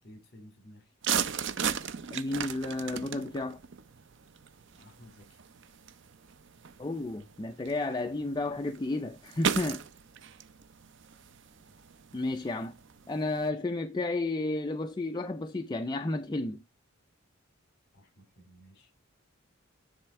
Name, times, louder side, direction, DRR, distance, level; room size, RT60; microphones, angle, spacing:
voice 1, 0.0-0.9 4.7-5.4 11.7-11.8 17.9-19.0, equal, 50° left, 3.2 m, -55 dB
sound 1, 1.0-13.5, right 7 dB, 60° right, 0.6 m, -37 dB
voice 2, 2.1-3.6 6.8-9.8 12.1-12.7 13.1-16.6, left 2 dB, 20° left, 0.4 m, -32 dB
10.0 x 3.4 x 4.5 m
head